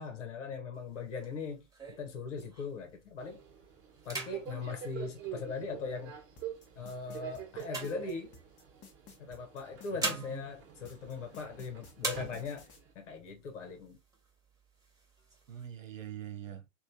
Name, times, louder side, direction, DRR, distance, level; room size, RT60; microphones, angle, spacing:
voice 1, 0.0-1.7 2.0-3.4 4.0-6.2 6.7-8.3 9.2-12.7 12.9-14.0, left 5 dB, 70° left, 1.1 m, -40 dB
sound 1, 0.7-2.9 3.4-3.6 4.0-5.9 6.6-8.7 9.6-11.6 12.0-12.8 13.3-13.4 13.6-14.3 14.8-15.7, right 2 dB, 10° right, 1.2 m, -42 dB
Subway metro underground, 3.2-12.9, right 10 dB, 35° right, 1.2 m, -46 dB
sound 2, 6.4-10.1 10.9-12.8, left 4 dB, 30° left, 1.0 m, -55 dB
voice 2, 9.9-10.4 12.1-12.5 15.5-16.7, right 10 dB, 80° right, 0.7 m, -44 dB
3.2 x 2.6 x 2.6 m
figure-of-eight pair, 95°, 38 cm